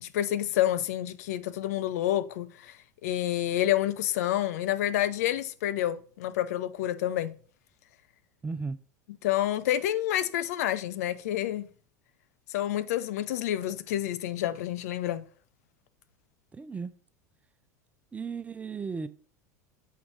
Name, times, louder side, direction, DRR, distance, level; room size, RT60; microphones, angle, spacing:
voice 1, 0.0-7.3 9.2-11.7 12.5-15.2, left 12 dB, 65° left, 0.5 m, -29 dB
voice 2, 8.4-8.8 16.5-17.0 18.1-19.1, right 4 dB, 15° right, 0.5 m, -35 dB
7.4 x 4.6 x 3.8 m
figure-of-eight pair, 80°, 9 cm